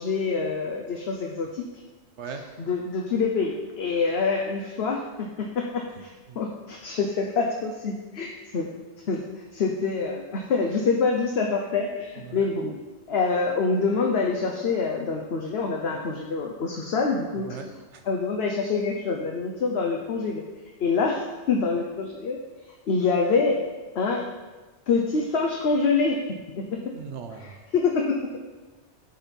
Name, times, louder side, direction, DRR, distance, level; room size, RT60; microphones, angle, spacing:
voice 1, 0.0-1.7 2.6-6.1 6.4-8.7 9.1-9.2 9.5-12.7 13.1-17.5 18.1-20.4 20.8-22.4 22.9-23.6 23.9-24.2 24.9-26.2 26.6-26.8 27.7-28.4, left 4 dB, 65° left, 1 dB, 1.0 m, -26 dB
voice 2, 6.0-6.4 12.2-12.5 17.3-18.1 26.9-27.6, right 6 dB, 75° right, 6 dB, 1.2 m, -40 dB
11.5 x 4.5 x 5.3 m, 1.3 s
omnidirectional pair, 1.2 m